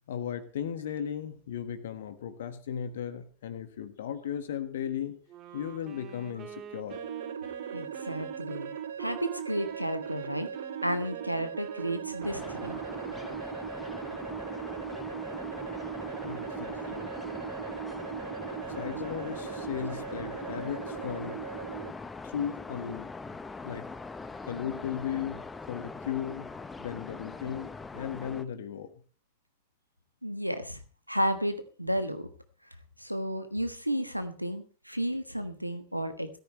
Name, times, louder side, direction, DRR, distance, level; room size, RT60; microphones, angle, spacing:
voice 1, 0.1-5.2 5.5-7.0 16.2-17.1 18.8-21.4 22.2-23.1 23.6-23.8 24.4-26.4 26.8-28.9, left 9 dB, 60° left, 10 dB, 1.6 m, -36 dB
Wind instrument woodwind instrument, 5.3-13.6, right 8 dB, 35° right, 2.0 m, -47 dB
sound 1, 6.9-21.9, right 8 dB, 65° right, 0.7 m, -38 dB
voice 2, 7.7-8.7 9.0-10.5 10.8-12.8 30.2-30.8 31.1-32.3 33.0-36.3, equal, 90° right, 9 dB, 1.3 m, -32 dB
sound 2, 12.2-28.4, left 4 dB, 10° left, 0.9 m, -42 dB
16.5 x 13.5 x 3.2 m, 0.38 s
figure-of-eight pair, 90°, 0 cm